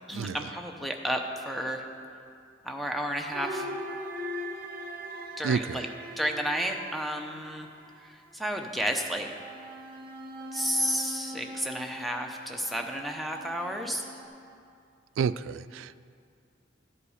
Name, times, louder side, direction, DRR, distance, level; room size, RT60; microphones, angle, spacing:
voice 1, 0.1-1.8 2.6-3.7 5.4-5.9 6.2-7.7 8.0-9.3 10.5-14.1, equal, ahead, 2 dB, 0.7 m, -32 dB
sound 1, 3.3-8.1 9.0-14.2, equal, 45° right, 0.9 m, -41 dB
voice 2, 5.4-5.8 15.2-16.0, right 6 dB, 85° right, 16 dB, 0.3 m, -29 dB
13.0 x 8.2 x 4.9 m, 2.4 s
head